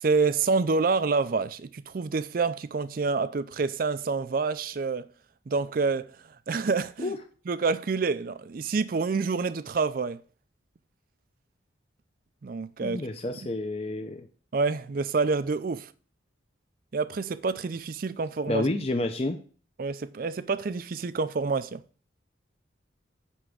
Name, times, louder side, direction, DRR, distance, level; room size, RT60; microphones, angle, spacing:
voice 1, 0.0-5.0 5.5-6.1 6.5-7.1 7.5-10.2 12.4-13.0 13.4-13.5 14.5-15.9 16.9-18.7 19.8-21.8, right 4 dB, 50° right, 0.4 m, -27 dB
voice 2, 12.8-14.3 18.5-19.4, left 2 dB, 30° left, 0.6 m, -29 dB
9.9 x 3.4 x 6.3 m
head